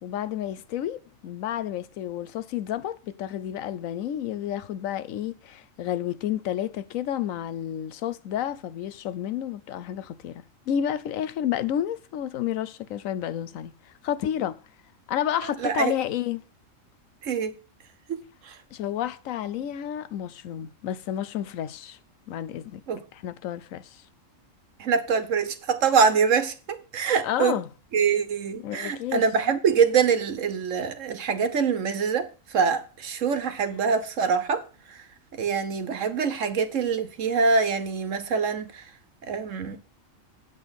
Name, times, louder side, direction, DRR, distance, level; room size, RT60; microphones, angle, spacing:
voice 1, 0.0-13.7 14.0-14.6 15.1-16.4 18.7-22.0 22.3-22.8 23.1-24.0 27.2-27.7 28.5-29.2, left 10 dB, 80° left, 1.0 m, -30 dB
voice 2, 15.6-15.9 17.2-17.5 18.1-18.2 18.4-18.5 22.9-23.0 24.8-27.6 27.9-35.0 35.4-38.8 39.3-39.8, right 5 dB, 70° right, 1.4 m, -24 dB
9.0 x 7.8 x 4.1 m
omnidirectional pair, 1.4 m